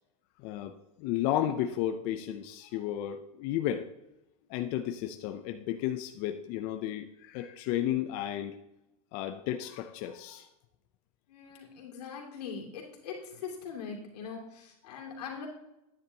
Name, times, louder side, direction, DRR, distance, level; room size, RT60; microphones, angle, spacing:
voice 1, 0.4-0.7 1.0-3.9 4.5-8.6 9.1-10.5 14.8-15.0, left 11 dB, 40° left, 7 dB, 0.5 m, -33 dB
voice 2, 11.3-15.5, left 6 dB, 85° left, 0 dB, 2.5 m, -41 dB
10.5 x 9.6 x 2.8 m, 0.91 s
supercardioid pair, 150°, 20 cm